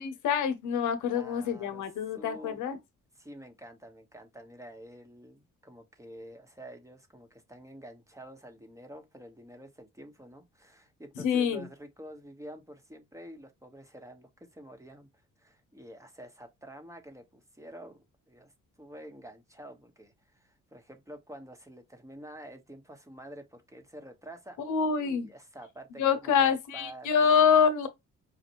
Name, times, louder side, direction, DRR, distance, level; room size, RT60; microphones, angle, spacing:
voice 1, 0.0-2.8 11.2-11.7 24.6-25.3 26.0-27.9, left 7 dB, 80° left, 0.9 m, -26 dB
voice 2, 1.1-1.8 2.2-2.6 3.2-18.5 18.8-27.6, right 1 dB, 10° right, 1.1 m, -48 dB
5.3 x 2.5 x 2.9 m
cardioid pair, 90°, 30 cm